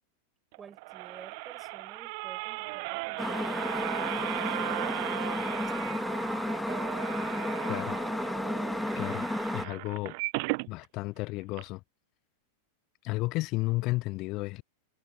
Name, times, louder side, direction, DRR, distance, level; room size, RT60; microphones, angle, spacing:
sound 1, 0.5-10.7 11.2-11.3 11.5-11.6, right 31 dB, 45° right, 0.6 m, -36 dB
voice 1, 0.6-4.5 5.7-6.4, right 6 dB, 20° right, 5.8 m, -52 dB
sound 2, 3.2-9.7, left 1 dB, 5° left, 1.4 m, -32 dB
voice 2, 8.9-9.3 9.5-10.1 10.7-11.8 13.0-14.6, left 21 dB, 40° left, 0.5 m, -32 dB
figure-of-eight pair, 90°, 0 cm